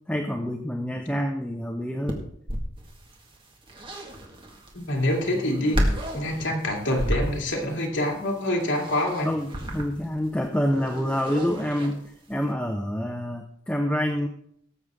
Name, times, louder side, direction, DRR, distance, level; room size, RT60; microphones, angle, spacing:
voice 1, 0.1-2.3 9.2-12.0 12.3-14.3, equal, 5° left, 4 dB, 0.7 m, -27 dB
sound 1, 2.1-12.4, equal, 25° right, 1.8 m, -32 dB
voice 2, 4.7-5.8 6.1-9.3, left 1 dB, 70° left, 0 dB, 2.6 m, -26 dB
18.0 x 7.8 x 3.6 m, 0.66 s
head